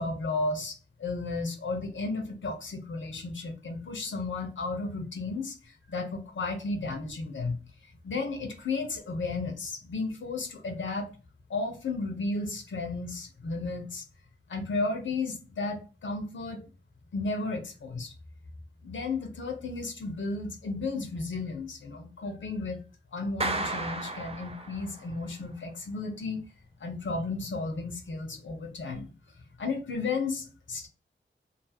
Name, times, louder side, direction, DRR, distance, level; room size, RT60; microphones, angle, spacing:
voice 1, 0.0-7.6 7.8-11.1 11.5-14.0 14.5-16.7 17.1-18.1 18.8-22.8 23.1-26.4 26.8-29.1 29.6-30.9, left 3 dB, 85° left, 0.7 m, -33 dB
Clapping, 23.4-25.1, right 2 dB, 30° right, 0.5 m, -33 dB
2.6 x 2.4 x 2.7 m
wide cardioid pair, 65°, 19 cm